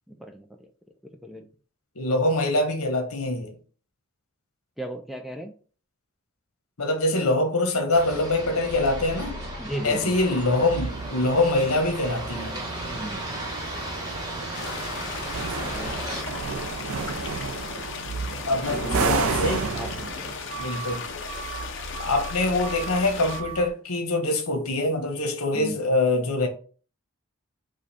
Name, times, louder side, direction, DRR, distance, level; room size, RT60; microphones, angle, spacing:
voice 1, 0.1-0.5 1.2-1.5 4.8-5.5 9.6-10.1 12.9-13.3 15.6-16.0 18.4-20.3 25.5-25.8, equal, ahead, 0.3 m, -36 dB
voice 2, 2.0-3.5 6.8-9.4 9.8-12.6 18.4-19.6 20.6-21.0 22.0-26.5, left 2 dB, 80° left, 1.1 m, -24 dB
sound 1, 7.9-16.2, right 1 dB, 20° right, 1.1 m, -35 dB
sound 2, 8.7-23.7, right 4 dB, 70° right, 0.5 m, -33 dB
sound 3, 14.5-23.4, left 5 dB, 55° left, 0.7 m, -36 dB
5.0 x 2.3 x 4.1 m
head